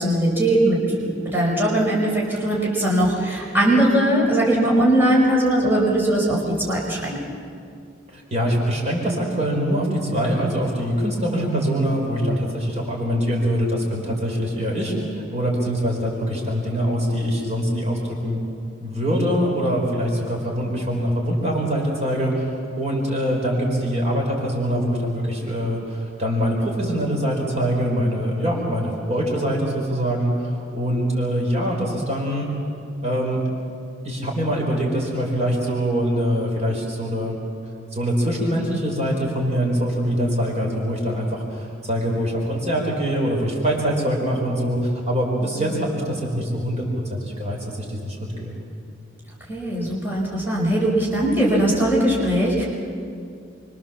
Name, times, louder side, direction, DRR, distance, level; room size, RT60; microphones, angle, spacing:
voice 1, 0.0-7.2 45.4-45.7 49.5-52.6, right 1 dB, 10° right, -5 dB, 5.2 m, -20 dB
voice 2, 8.1-18.4 18.8-32.5 33.0-33.4 34.0-37.4 37.9-46.8 47.1-48.6, equal, 35° right, -2 dB, 5.2 m, -23 dB
27.0 x 24.0 x 7.4 m, 2.4 s
head